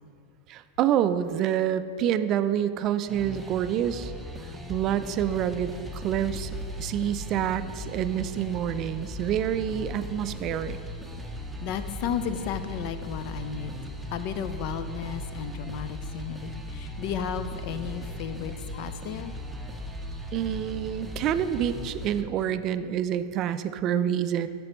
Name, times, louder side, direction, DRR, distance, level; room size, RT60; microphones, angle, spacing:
voice 1, 0.5-4.1 4.7-6.5 6.8-10.8 20.3-24.5, right 10 dB, 40° right, 12 dB, 0.3 m, -27 dB
sound 1, 3.1-22.2, left 1 dB, 5° right, 0.7 m, -38 dB
voice 2, 11.6-13.8 14.1-19.3, left 8 dB, 55° left, 11 dB, 0.5 m, -34 dB
8.7 x 6.8 x 3.0 m, 2.4 s
hypercardioid pair, 115°, 0 cm